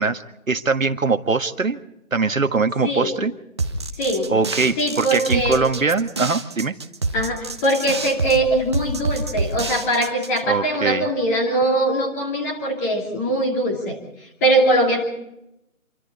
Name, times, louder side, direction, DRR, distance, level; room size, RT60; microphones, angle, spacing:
voice 1, 0.0-1.8 2.1-3.3 4.3-6.7 10.5-11.1, right 4 dB, 70° right, 8 dB, 1.7 m, -22 dB
sound 1, 3.6-10.4, right 3 dB, 20° right, 1.1 m, -27 dB
voice 2, 4.0-4.3 4.8-5.6 7.1-14.0 14.4-15.0, right 1 dB, 10° left, 1 dB, 2.5 m, -21 dB
27.0 x 24.5 x 4.1 m, 0.85 s
figure-of-eight pair, 160°, 41 cm